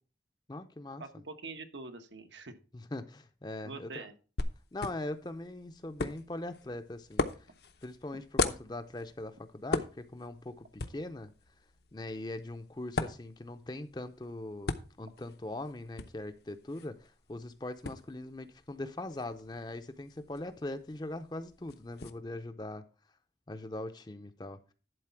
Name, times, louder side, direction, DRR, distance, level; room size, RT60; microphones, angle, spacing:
voice 1, 0.5-1.0 2.7-4.1 4.7-7.5 7.8-11.3 11.9-14.7 15.0-22.8 23.5-24.7, left 2 dB, 25° left, 0.5 m, -41 dB
voice 2, 1.0-2.5 3.6-4.1, right 3 dB, 85° right, 1.2 m, -44 dB
sound 1, 4.4-22.1, left 3 dB, 65° left, 0.7 m, -40 dB
11.0 x 4.1 x 5.8 m
head